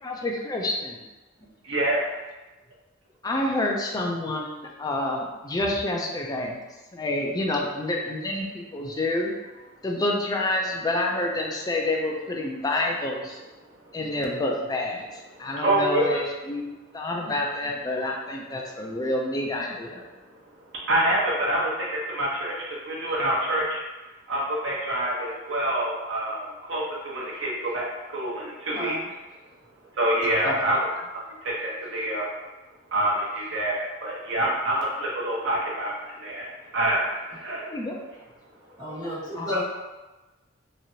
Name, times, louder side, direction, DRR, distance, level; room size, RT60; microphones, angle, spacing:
voice 1, 0.0-1.0 3.2-6.6 6.9-9.3 9.8-13.4 13.9-15.0 15.4-20.0 30.4-30.6 37.5-38.0 38.9-39.5, left 2 dB, 20° left, 0 dB, 0.4 m, -28 dB
voice 2, 1.6-2.0 15.5-16.2 20.7-23.8 24.3-26.4 26.7-29.0 29.9-30.8 31.4-32.2 32.9-37.7 39.5-39.6, right 1 dB, 65° right, -5 dB, 0.8 m, -26 dB
voice 3, 28.7-29.0 38.8-39.6, left 1 dB, 20° right, -11 dB, 1.2 m, -32 dB
3.0 x 2.4 x 2.7 m, 1.1 s
head